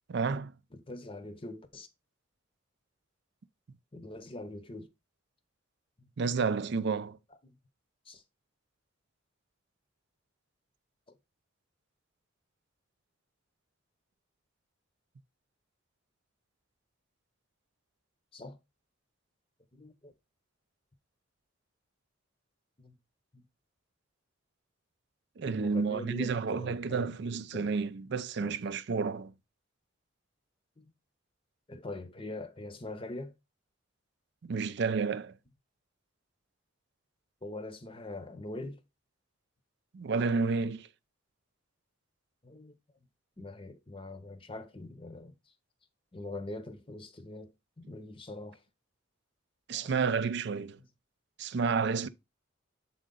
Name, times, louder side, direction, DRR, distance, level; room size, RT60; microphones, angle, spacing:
voice 1, 0.1-0.5 6.2-7.2 25.4-29.3 34.4-35.3 39.9-40.9 49.7-50.8 51.4-52.1, right 5 dB, 55° right, 0.4 m, -30 dB
voice 2, 0.7-1.9 3.9-4.9 6.0-6.1 7.4-7.6 8.1-8.2 18.3-18.6 19.7-20.1 22.8-23.0 23.3-23.4 25.4-27.1 27.5-27.7 28.4-28.6 30.8-30.9 31.7-33.3 37.4-38.8 42.4-42.8 43.4-45.5 46.1-48.6 49.7-50.0, left 2 dB, 25° left, 0.8 m, -43 dB
7.4 x 3.8 x 3.8 m
head